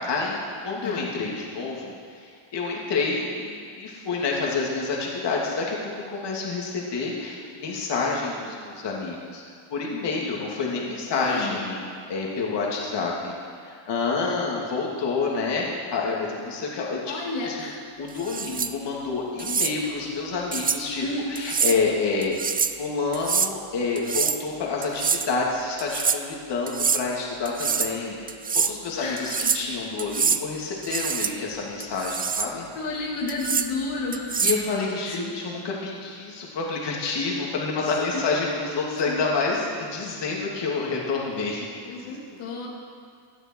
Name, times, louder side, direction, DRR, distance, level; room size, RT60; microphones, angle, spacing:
voice 1, 0.0-9.4 9.7-13.3 13.6-17.1 17.4-17.7 18.0-22.4 22.7-32.7 34.4-41.7 41.9-42.5, left 4 dB, 55° left, -3 dB, 2.8 m, -28 dB
voice 2, 11.1-11.6 17.1-17.8 21.0-21.4 29.0-29.6 32.7-34.4 35.1-35.2 38.1-38.6 39.1-39.2 41.9-42.7, left 3 dB, 85° left, -3 dB, 2.8 m, -32 dB
sound 1, 18.2-18.7 19.4-19.7 20.5-20.8 21.4-21.8 22.2-22.8 23.1-23.5 24.0-24.4 24.8-25.3 25.8-26.2 26.7-27.0 27.5-27.9 28.3-28.7 29.2-29.7 30.0-30.4 30.8-31.3 31.8-32.5 33.3-33.7 34.1-34.7, right 6 dB, 20° right, 0.4 m, -25 dB
18.0 x 12.0 x 4.7 m, 2.2 s
cardioid pair, 115°, 49 cm